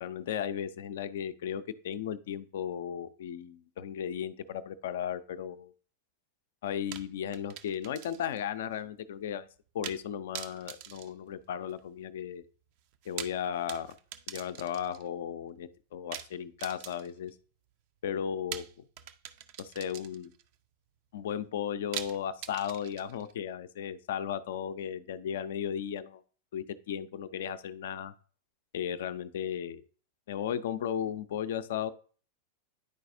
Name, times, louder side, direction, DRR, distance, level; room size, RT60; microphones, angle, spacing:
voice 1, 0.0-5.7 6.6-9.5 9.7-12.4 13.1-13.9 14.3-17.4 18.0-18.9 19.6-20.3 21.1-26.2 26.5-28.1 28.7-29.8 30.3-31.9, left 9 dB, 55° left, 13 dB, 0.5 m, -35 dB
sound 1, 6.9-8.4 8.7-8.8 9.8-10.1 10.3-11.9 12.9-15.1 16.1-17.3 18.5-20.4 21.9-23.3, right 11 dB, 45° right, 0.5 m, -43 dB
10.0 x 4.6 x 2.6 m, 0.41 s
figure-of-eight pair, 90°, 0 cm